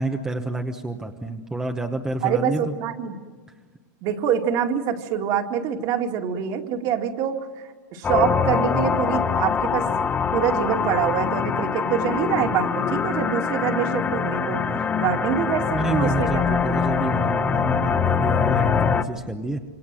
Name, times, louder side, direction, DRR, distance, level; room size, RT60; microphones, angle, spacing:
voice 1, 0.0-2.8 14.3-14.9 15.7-19.6, right 2 dB, 5° right, 4 dB, 1.1 m, -29 dB
voice 2, 2.2-3.2 4.0-7.5 7.9-9.8 10.3-16.9, right 8 dB, 35° right, 4 dB, 2.4 m, -25 dB
sound 1, 8.0-19.0, left 6 dB, 15° left, 1.1 m, -23 dB
27.5 x 24.5 x 7.7 m, 1.5 s
supercardioid pair, 155°, 11 cm